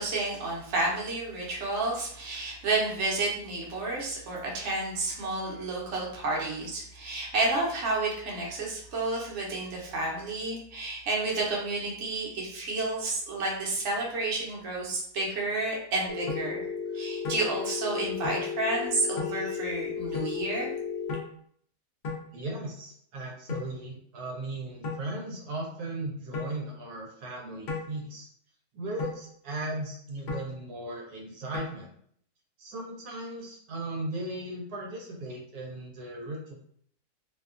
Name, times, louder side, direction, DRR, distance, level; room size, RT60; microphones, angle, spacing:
voice 1, 0.0-16.6 16.9-20.7, right 2 dB, 55° right, -3 dB, 1.0 m, -30 dB
Telephone, 16.1-21.1, left 6 dB, 25° left, 0.5 m, -34 dB
sound 1, 16.3-16.4 17.2-17.4 18.2-18.4 19.2-19.3 20.1-20.3 21.1-21.3 22.0-22.2 23.5-23.7 24.8-25.0 26.3-26.6 27.7-27.9 29.0-29.2 30.3-30.5 31.5-31.7, left 4 dB, 55° left, 0.8 m, -34 dB
voice 2, 22.3-28.3 28.7-31.9 32.6-36.5, right 2 dB, 80° right, -1 dB, 1.1 m, -37 dB
2.7 x 2.3 x 2.4 m, 0.63 s
omnidirectional pair, 1.6 m